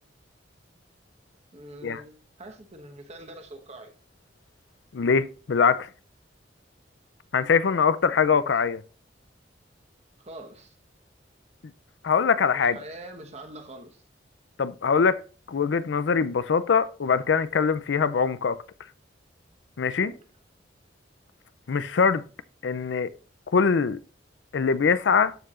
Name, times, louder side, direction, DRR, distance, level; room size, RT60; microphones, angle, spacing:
voice 1, 1.5-3.9 8.2-8.5 10.2-10.8 12.5-14.0 20.0-20.2, right 1 dB, 40° right, 1.2 m, -44 dB
voice 2, 4.9-5.9 7.3-8.8 12.0-12.8 14.6-15.2 15.5-18.6 19.8-20.1 21.7-22.2 22.6-23.1 23.5-24.0 24.5-25.3, left 5 dB, 85° left, 0.5 m, -22 dB
13.0 x 4.7 x 2.5 m
head